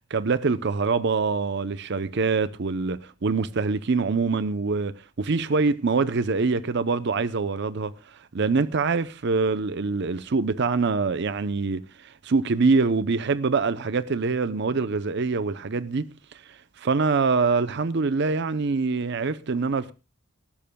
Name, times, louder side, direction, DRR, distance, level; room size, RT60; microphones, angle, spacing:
voice 1, 0.1-16.1 16.5-19.9, right 4 dB, 55° right, 0.6 m, -24 dB
19.5 x 15.5 x 2.2 m
head